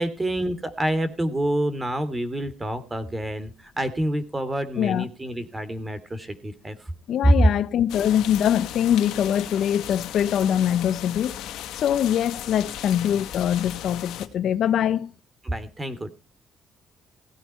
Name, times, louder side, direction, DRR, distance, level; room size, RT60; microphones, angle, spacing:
voice 1, 0.0-6.7 7.2-7.3 15.4-16.1, right 1 dB, 20° right, 3.0 m, -27 dB
voice 2, 4.8-5.1 7.1-11.4 11.8-15.1, left 10 dB, 70° left, 0.9 m, -23 dB
sound 1, 7.9-14.3, left 11 dB, 90° left, 1.8 m, -36 dB
17.0 x 9.2 x 4.5 m
cardioid pair, 90°, 0 cm